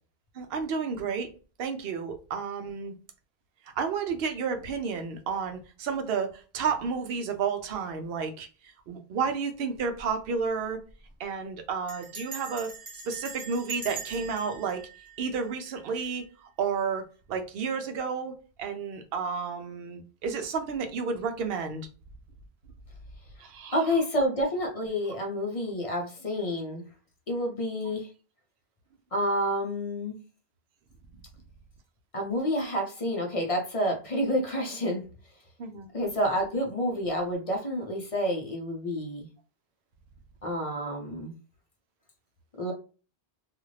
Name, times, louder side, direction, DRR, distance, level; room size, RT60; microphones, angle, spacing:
voice 1, 0.3-1.3 1.6-2.9 3.8-8.5 8.9-10.8 11.2-12.7 13.1-14.8 15.2-17.0 17.3-21.9 23.4-23.7 35.6-35.9, right 5 dB, 70° right, 6 dB, 0.8 m, -31 dB
Bell, 9.8-10.1 10.4-10.5 10.7-11.1 11.9-16.0, right 4 dB, 35° right, 0.8 m, -43 dB
voice 2, 23.7-26.8 27.3-28.1 29.1-30.2 32.1-35.0 35.9-39.3 40.4-41.3 42.6-42.7, equal, 40° left, 1 dB, 0.6 m, -29 dB
2.5 x 2.4 x 3.1 m, 0.36 s
omnidirectional pair, 1.0 m